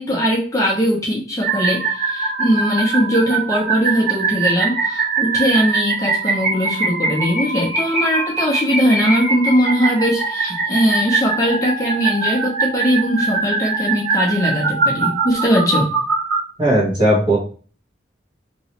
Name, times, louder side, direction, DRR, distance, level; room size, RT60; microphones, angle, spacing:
voice 1, 0.0-15.9, equal, 20° left, -3 dB, 0.7 m, -20 dB
sound 1, 1.4-16.4, right 4 dB, 65° right, 1.7 m, -22 dB
voice 2, 16.6-17.4, right 1 dB, 25° right, -4 dB, 1.2 m, -16 dB
3.0 x 2.9 x 2.9 m, 0.41 s
head